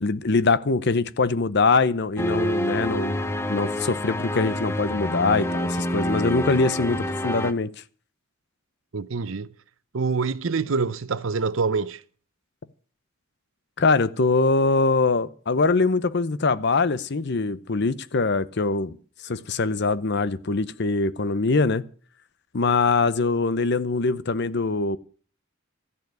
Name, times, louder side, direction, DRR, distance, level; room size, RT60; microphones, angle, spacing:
voice 1, 0.0-3.2 3.5-7.7 13.8-19.0 19.2-21.8 22.5-25.0, left 3 dB, 55° left, 0.7 m, -23 dB
sound 1, 2.2-7.5, equal, 10° left, 0.8 m, -27 dB
voice 2, 8.9-9.5 9.9-12.0, right 4 dB, 70° right, 0.6 m, -26 dB
13.5 x 6.9 x 9.3 m
head